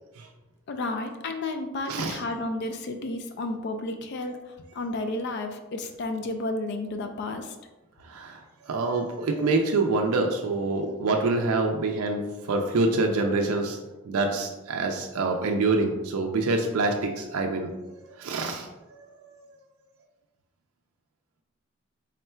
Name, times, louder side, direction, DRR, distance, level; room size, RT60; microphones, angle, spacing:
voice 1, 0.7-7.6, left 2 dB, 50° left, 6 dB, 0.3 m, -32 dB
voice 2, 1.9-2.2 8.1-13.8 14.1-17.7 18.2-19.5, right 3 dB, 75° right, 2 dB, 0.4 m, -26 dB
3.6 x 2.2 x 4.2 m, 1.1 s
head